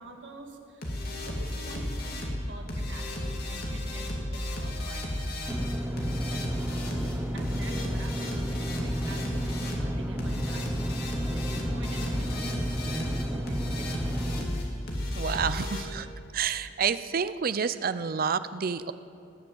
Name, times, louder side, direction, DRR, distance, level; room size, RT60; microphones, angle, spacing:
voice 1, 0.0-6.4 7.3-14.2, right 2 dB, 75° right, 3 dB, 1.8 m, -47 dB
sound 1, 0.8-15.8, left 1 dB, 55° left, 2.5 m, -33 dB
Engine / Mechanisms, 5.5-14.4, right 1 dB, 10° right, 0.8 m, -33 dB
voice 2, 15.2-16.1 16.3-18.9, right 6 dB, 50° right, 13 dB, 0.5 m, -29 dB
19.0 x 7.2 x 7.9 m, 2.6 s
head